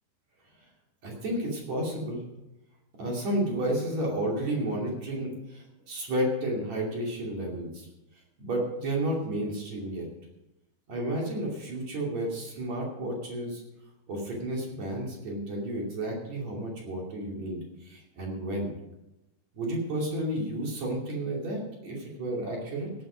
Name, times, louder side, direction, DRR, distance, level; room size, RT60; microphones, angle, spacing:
voice 1, 1.0-2.2 2.9-7.9 8.4-10.1 10.9-13.6 14.1-18.7 19.5-22.9, right 1 dB, 45° right, -2 dB, 3.4 m, -32 dB
17.0 x 9.4 x 5.1 m, 0.94 s
omnidirectional pair, 5.1 m